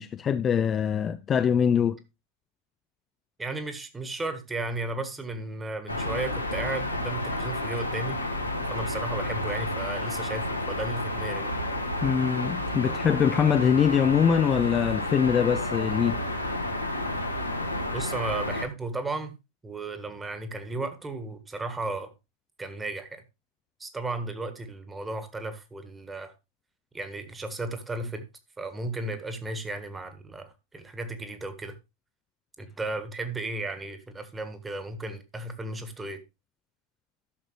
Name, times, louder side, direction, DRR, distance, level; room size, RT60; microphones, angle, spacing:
voice 1, 0.0-2.0 12.0-16.2, left 7 dB, 25° left, 0.4 m, -23 dB
voice 2, 3.4-8.2 8.7-11.5 17.9-19.4 19.6-22.1 22.6-23.2 23.8-26.3 26.9-28.2 28.6-31.7 32.6-36.2, right 2 dB, 10° right, 1.5 m, -34 dB
sound 1, 5.9-18.7, left 1 dB, 85° left, 1.5 m, -31 dB
12.5 x 6.5 x 3.2 m
figure-of-eight pair, 90°, 0 cm